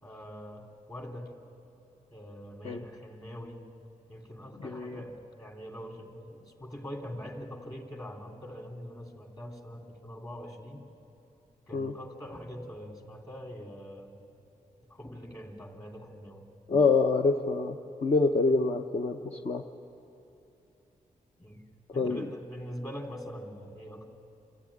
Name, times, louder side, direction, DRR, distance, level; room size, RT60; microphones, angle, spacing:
voice 1, 0.0-1.3 2.1-3.6 4.1-10.9 11.7-14.2 14.9-16.4 21.4-21.6 21.9-24.1, equal, 25° left, 1 dB, 3.2 m, -43 dB
voice 2, 4.6-5.0 11.7-11.9 16.7-19.7 22.0-22.2, left 3 dB, 45° left, 4 dB, 0.8 m, -26 dB
27.0 x 14.5 x 9.9 m, 2.9 s
wide cardioid pair, 105°, 14 cm